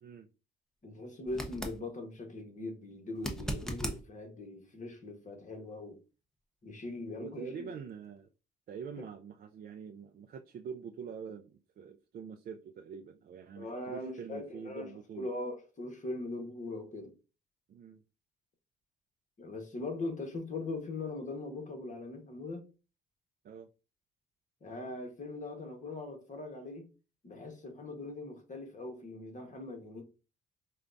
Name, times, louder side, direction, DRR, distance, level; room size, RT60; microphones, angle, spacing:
voice 1, 0.8-6.0 6.6-7.7 13.6-14.9 15.2-17.1 19.4-22.7 24.6-26.9 27.2-30.0, left 2 dB, 40° left, 1.2 m, -41 dB
sound 1, 1.3-1.8 3.2-4.0 7.0-7.1, right 1 dB, 5° left, 0.7 m, -37 dB
voice 2, 7.2-8.3 8.7-15.3 17.7-18.0 23.4-23.7, right 7 dB, 50° right, 0.4 m, -45 dB
4.9 x 2.3 x 2.5 m
cardioid pair, 90°, 20 cm